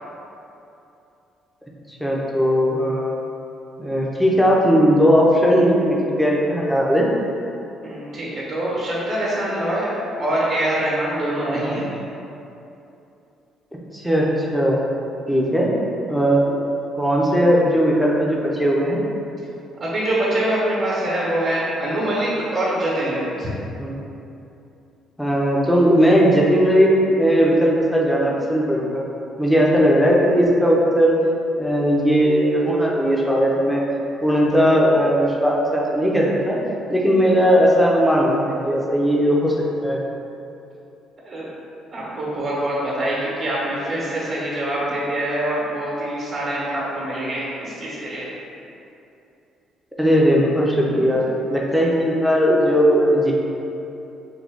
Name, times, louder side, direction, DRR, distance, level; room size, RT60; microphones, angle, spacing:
voice 1, 1.9-3.2 3.8-7.1 11.4-11.8 13.9-14.8 15.3-15.7 16.1-16.6 16.9-19.0 23.8-24.0 25.2-26.9 27.2-29.0 29.4-31.2 31.6-33.9 34.2-36.6 36.9-39.5 39.8-40.0 50.0-51.2 51.5-53.3, equal, ahead, -3 dB, 0.5 m, -18 dB
voice 2, 7.8-9.9 10.2-11.8 19.8-23.5 41.2-41.5 41.9-48.3, right 1 dB, 50° right, -7 dB, 1.0 m, -24 dB
3.7 x 2.2 x 3.5 m, 2.8 s
cardioid pair, 110°, 0 cm